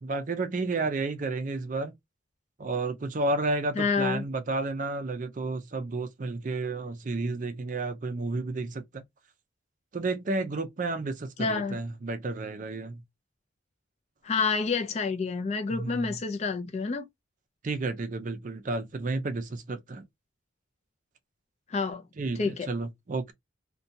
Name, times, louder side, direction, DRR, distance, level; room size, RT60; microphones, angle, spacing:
voice 1, 0.0-1.9 2.6-9.0 9.9-13.0 15.7-16.2 17.6-20.0 22.2-23.3, right 3 dB, 40° right, 0.4 m, -31 dB
voice 2, 3.8-4.2 11.4-11.8 14.2-17.1 21.7-22.0 22.4-22.7, left 4 dB, 35° left, 0.3 m, -28 dB
2.7 x 2.2 x 2.6 m
head